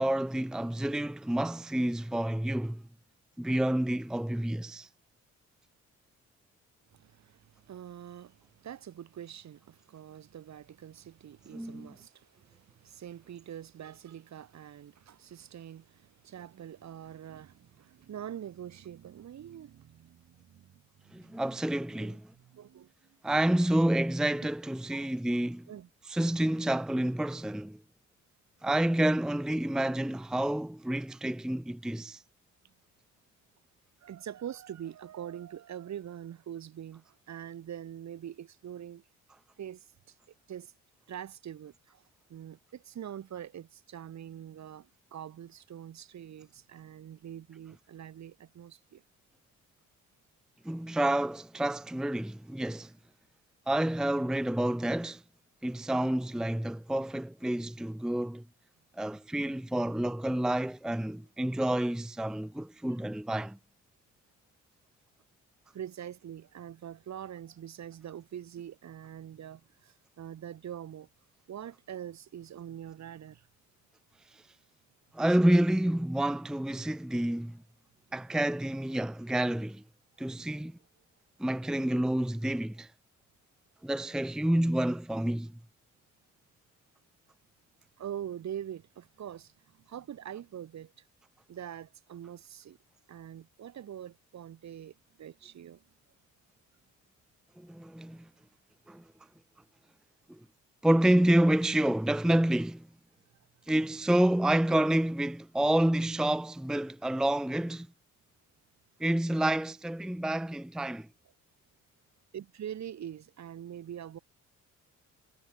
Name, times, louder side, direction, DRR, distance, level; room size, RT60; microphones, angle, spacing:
voice 1, 0.0-2.8 3.4-4.9 11.5-11.9 21.1-22.3 23.2-25.7 26.1-27.8 28.6-32.2 50.6-52.9 53.7-55.2 55.6-58.4 59.0-63.6 74.3-74.4 75.1-77.6 78.1-79.8 80.2-80.8 81.4-82.9 83.8-85.6 97.6-98.3 98.9-99.0 100.8-102.9 103.7-107.9 109.0-111.1, right 1 dB, ahead, 0.6 m, -29 dB
voice 2, 6.9-21.4 22.0-23.2 24.9-25.1 25.7-25.9 32.6-32.7 34.0-39.0 39.6-40.1 40.5-40.7 41.1-42.0 42.3-49.0 65.7-71.1 71.5-73.5 88.0-91.0 91.5-92.8 93.1-95.8 112.3-114.2, right 10 dB, 65° right, 5.1 m, -44 dB
cardioid pair, 90°, 30 cm